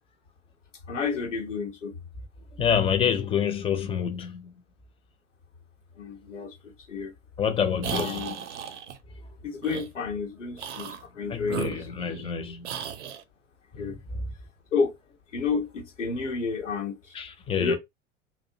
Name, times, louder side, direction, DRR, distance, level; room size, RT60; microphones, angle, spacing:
voice 1, 0.9-1.9 6.0-7.1 7.9-8.4 9.4-11.8 13.8-14.0 14.7-14.9 15.3-17.0 17.6-17.8, left 5 dB, 80° left, 0.8 m, -30 dB
voice 2, 2.6-4.6 7.4-8.3 11.3-12.9 13.7-14.3 17.1-17.8, left 7 dB, 15° left, 0.4 m, -28 dB
sound 1, 7.8-9.0 9.6-9.9 10.5-11.0 11.4-12.3 12.6-13.2, right 8 dB, 70° right, 0.5 m, -35 dB
2.4 x 2.1 x 2.7 m
figure-of-eight pair, 75°, 36 cm